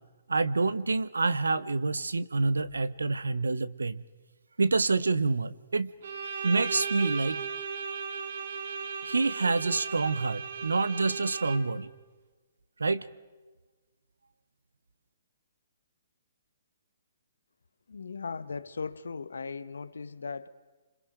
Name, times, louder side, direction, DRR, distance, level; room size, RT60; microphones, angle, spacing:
voice 1, 0.3-4.0 4.6-5.9 6.4-7.4 9.0-11.9 12.8-13.1, right 3 dB, 90° right, 1.0 m, -27 dB
Bowed string instrument, 6.0-11.9, right 6 dB, 65° right, 2.3 m, -36 dB
voice 2, 17.9-20.5, left 5 dB, 80° left, 1.2 m, -38 dB
29.0 x 26.0 x 5.1 m
hypercardioid pair, 135°, 0 cm